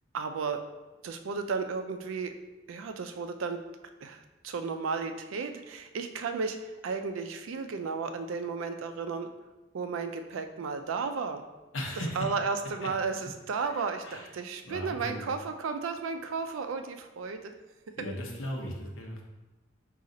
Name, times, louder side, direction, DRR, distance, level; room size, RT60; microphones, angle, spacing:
voice 1, 0.1-0.6 1.0-2.3 2.7-3.6 4.0-9.3 9.7-11.4 12.2-17.5, right 5 dB, 85° right, 7 dB, 0.4 m, -33 dB
voice 2, 11.7-12.3 12.8-12.9 13.7-14.3 14.6-15.3 18.0-19.2, left 1 dB, 90° left, 0 dB, 0.8 m, -37 dB
4.1 x 2.4 x 3.8 m, 1.1 s
head